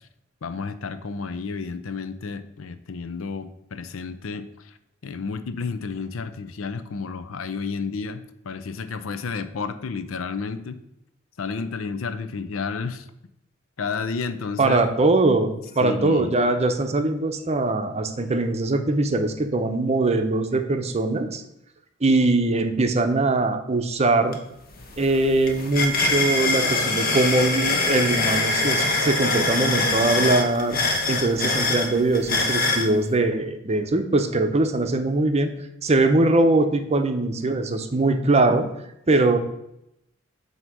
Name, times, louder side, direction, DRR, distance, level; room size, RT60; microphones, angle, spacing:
voice 1, 0.4-4.7 5.0-10.8 11.4-13.1 13.8-14.8 15.8-16.3, left 5 dB, 90° left, 11 dB, 0.5 m, -31 dB
voice 2, 14.6-21.4 22.0-24.4 25.0-30.8 31.1-35.5 35.8-38.7 39.1-39.4, right 2 dB, 35° right, 7 dB, 0.6 m, -21 dB
sound 1, 24.3-24.4 24.7-32.9, left 3 dB, 50° left, 1.0 m, -24 dB
7.9 x 2.8 x 5.9 m, 0.82 s
head